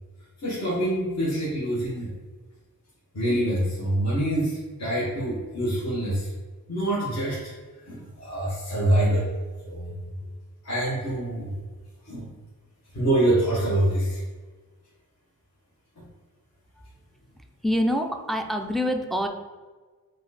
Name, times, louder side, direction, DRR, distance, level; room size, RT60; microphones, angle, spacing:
voice 1, 0.4-2.1 3.1-6.3 6.7-7.5 7.8-9.3 9.6-10.0 10.6-11.6 12.0-12.3 12.9-14.2 16.0-16.1, right 1 dB, 45° left, -8 dB, 1.3 m, -25 dB
voice 2, 17.6-19.3, equal, ahead, 4 dB, 0.4 m, -25 dB
4.8 x 2.5 x 4.1 m, 1.4 s
wide cardioid pair, 85°, 37 cm